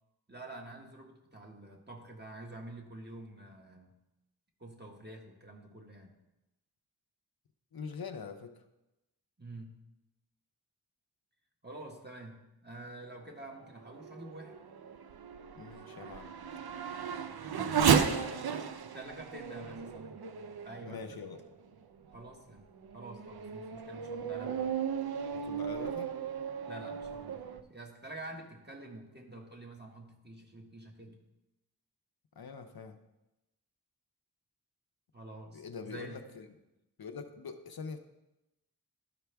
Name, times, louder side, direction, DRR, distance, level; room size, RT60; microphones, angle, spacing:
voice 1, 0.3-3.9 4.6-6.2 9.4-9.8 11.6-14.6 17.5-18.3 18.8-20.2 20.6-21.2 22.1-24.7 26.7-31.2 35.1-36.2, right 2 dB, 25° right, 0 dB, 1.4 m, -48 dB
voice 2, 7.7-8.6 15.5-16.4 17.8-18.4 20.9-21.4 25.3-26.2 32.4-33.0 35.5-36.6 37.0-38.0, left 5 dB, 65° left, 6 dB, 0.7 m, -44 dB
Race car auto racing / Accelerating revving vroom, 13.6-21.5 22.1-22.2 22.8-27.6, right 7 dB, 70° right, 0.6 m, -34 dB
12.5 x 4.7 x 3.4 m, 0.96 s
wide cardioid pair, 45°, 39 cm